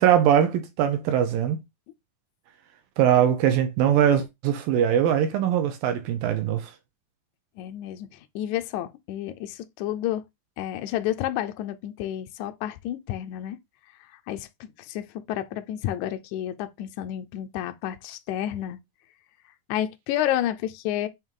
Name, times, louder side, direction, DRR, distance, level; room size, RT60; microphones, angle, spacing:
voice 1, 0.0-1.6 3.0-6.7, right 9 dB, 85° right, 2.6 m, -21 dB
voice 2, 7.6-10.2 10.6-13.6 14.0-18.8 19.7-21.1, left 12 dB, 85° left, 1.7 m, -30 dB
8.9 x 3.1 x 3.7 m
omnidirectional pair, 4.1 m